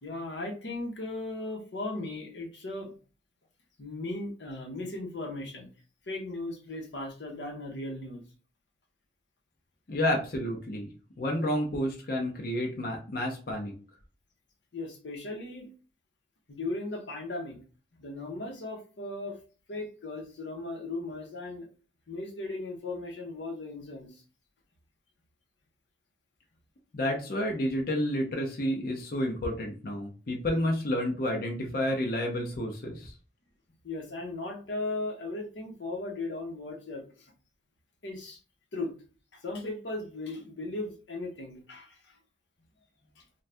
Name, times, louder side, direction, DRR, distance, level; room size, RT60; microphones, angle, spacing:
voice 1, 0.0-2.9 3.8-5.7 6.1-8.2 14.7-15.7 16.5-17.6 18.0-19.4 19.7-21.7 22.1-24.2 33.8-37.3 38.0-38.4 38.7-38.9 39.3-42.2 43.2-43.3, left 2 dB, 90° left, 1 dB, 0.9 m, -37 dB
voice 2, 9.9-10.9 11.2-13.7 26.9-33.2, left 1 dB, 55° left, 0 dB, 0.6 m, -30 dB
2.6 x 2.3 x 3.3 m, 0.37 s
head